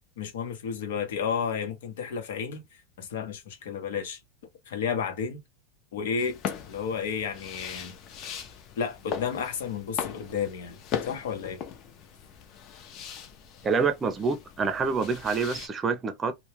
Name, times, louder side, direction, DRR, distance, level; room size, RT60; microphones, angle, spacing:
voice 1, 0.2-2.6 3.0-4.2 4.7-5.4 5.9-6.4 6.7-8.0 8.8-11.6, left 6 dB, 85° left, 0.9 m, -32 dB
sound 1, 6.2-15.7, left 8 dB, 40° left, 0.6 m, -39 dB
voice 2, 13.6-16.3, right 5 dB, 20° right, 0.6 m, -27 dB
2.3 x 2.2 x 3.0 m
supercardioid pair, 150°, 0 cm